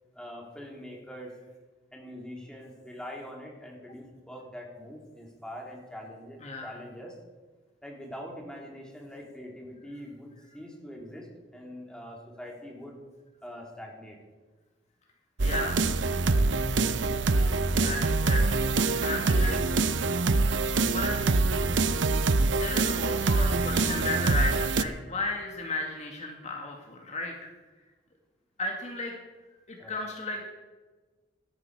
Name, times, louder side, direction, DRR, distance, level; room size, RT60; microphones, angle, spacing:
voice 1, 0.1-1.3 1.9-7.2 7.8-11.3 11.5-13.0 13.4-14.2 29.8-30.0, equal, 5° left, -1 dB, 3.1 m, -43 dB
voice 2, 6.4-6.7 15.4-15.9 17.7-18.7 19.0-19.7 20.9-21.3 22.5-27.5 28.6-29.1 29.7-30.4, left 2 dB, 40° left, 0 dB, 1.9 m, -34 dB
sound 1, 15.4-24.8, right 3 dB, 80° right, 0.7 m, -25 dB
17.5 x 13.0 x 4.8 m, 1.3 s
head